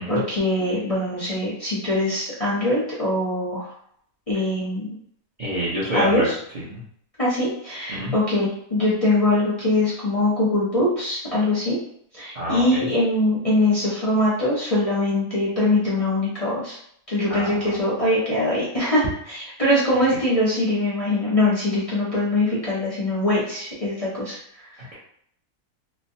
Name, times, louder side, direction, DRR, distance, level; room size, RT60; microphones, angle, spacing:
voice 1, 0.0-3.7 4.3-4.9 5.9-6.3 7.2-11.8 12.1-16.7 17.1-24.4, left 1 dB, 30° left, -9 dB, 0.7 m, -22 dB
voice 2, 5.4-6.3 6.5-6.8 7.9-8.1 12.3-12.8 17.3-17.8, equal, 45° right, -8 dB, 0.7 m, -27 dB
3.1 x 2.0 x 2.7 m, 0.68 s
omnidirectional pair, 1.6 m